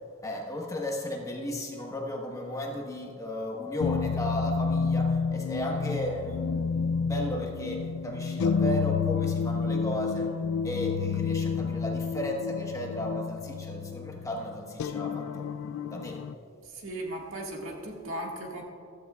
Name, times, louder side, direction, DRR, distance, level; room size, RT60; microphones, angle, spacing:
voice 1, 0.2-10.3 10.6-15.5 15.9-16.2, equal, 15° left, 0 dB, 1.2 m, -35 dB
sound 1, 3.8-16.3, left 5 dB, 85° left, 0.3 m, -30 dB
voice 2, 16.6-18.6, right 1 dB, 75° right, -1 dB, 1.8 m, -37 dB
14.5 x 13.5 x 2.3 m, 2.4 s
head